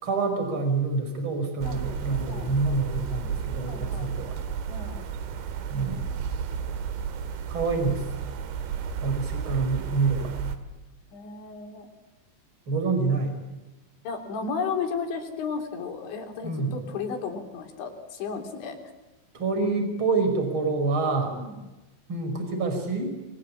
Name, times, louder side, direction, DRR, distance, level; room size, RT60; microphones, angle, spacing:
voice 1, 0.0-4.4 5.7-6.1 7.5-8.1 9.0-10.3 12.7-13.4 16.4-16.8 19.3-21.5 22.1-23.1, right 3 dB, 25° right, 6 dB, 5.7 m, -27 dB
sound 1, 1.6-10.6, right 7 dB, 85° right, 4.3 m, -32 dB
voice 2, 2.2-2.5 3.7-4.1 4.7-5.0 11.1-11.9 14.1-18.8 21.3-21.6, left 5 dB, 80° left, 3 dB, 5.7 m, -34 dB
29.5 x 22.5 x 8.6 m, 1.1 s
omnidirectional pair, 5.2 m